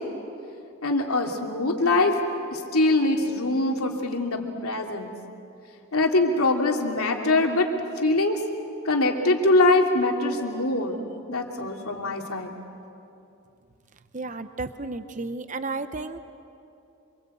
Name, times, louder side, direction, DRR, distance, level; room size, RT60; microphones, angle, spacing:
voice 1, 0.8-2.1 2.5-5.1 5.9-7.7 8.0-8.4 8.8-12.5, left 2 dB, 90° left, 2 dB, 2.9 m, -23 dB
voice 2, 14.1-16.2, right 3 dB, 35° right, 11 dB, 0.9 m, -33 dB
26.5 x 25.0 x 8.5 m, 2.7 s
head